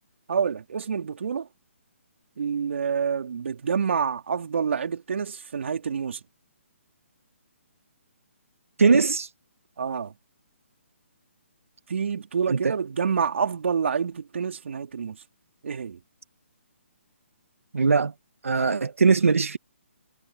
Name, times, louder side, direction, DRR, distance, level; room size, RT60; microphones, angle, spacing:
voice 1, 0.3-1.5 2.4-6.2 9.8-10.1 11.9-15.2 15.6-16.0, right 6 dB, 65° right, 3.7 m, -27 dB
voice 2, 8.8-9.3 12.5-12.7 17.7-18.1 18.4-19.6, right 4 dB, 85° right, 2.1 m, -20 dB
hypercardioid pair, 160°, 7 cm